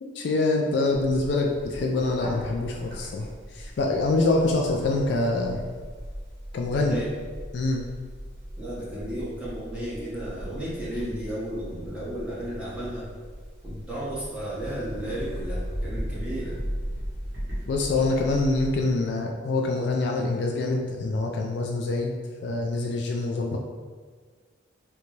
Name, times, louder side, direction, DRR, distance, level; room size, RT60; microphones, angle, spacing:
voice 1, 0.0-3.3 3.5-5.6 6.5-7.0 7.5-7.8 17.7-22.2 22.4-23.6, left 2 dB, 55° left, 1 dB, 0.3 m, -25 dB
Bird, 0.9-18.9, equal, 50° right, 1.3 m, -37 dB
voice 2, 6.7-7.1 8.6-13.1 13.6-16.6, right 1 dB, 5° right, -9 dB, 0.9 m, -34 dB
3.9 x 2.2 x 3.1 m, 1.5 s
head